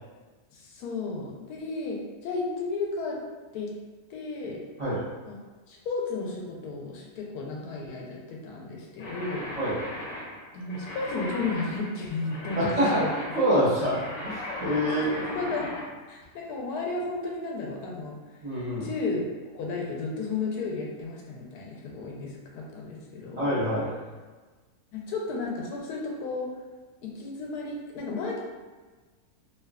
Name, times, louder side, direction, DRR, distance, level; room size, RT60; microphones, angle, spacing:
voice 1, 0.5-3.2 3.5-3.7 4.1-4.6 5.3-5.4 5.7-9.5 10.5-13.1 14.9-15.7 16.1-18.2 18.8-23.5 24.9-26.5 27.0-28.4, left 3 dB, 85° left, -1 dB, 1.1 m, -33 dB
sound 1, 9.0-15.9, left 1 dB, 65° left, 1.0 m, -37 dB
voice 2, 12.6-15.1 18.4-18.9 23.4-23.9, equal, 45° right, -12 dB, 0.5 m, -26 dB
2.9 x 2.1 x 2.3 m, 1.3 s
omnidirectional pair, 1.6 m